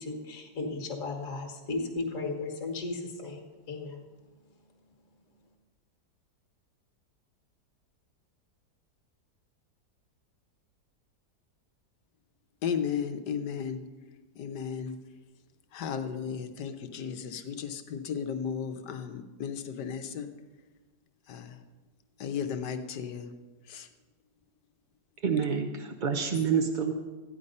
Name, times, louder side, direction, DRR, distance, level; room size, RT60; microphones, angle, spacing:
voice 1, 0.0-4.0, left 3 dB, 55° left, 2 dB, 1.8 m, -35 dB
voice 2, 12.6-13.8 14.3-15.0 15.7-20.3 21.3-21.6 22.2-23.3 23.7-23.9, left 7 dB, 85° left, 8 dB, 1.5 m, -34 dB
voice 3, 25.2-26.9, right 6 dB, 45° right, 4 dB, 0.6 m, -27 dB
13.5 x 9.9 x 5.4 m, 1.3 s
omnidirectional pair, 1.7 m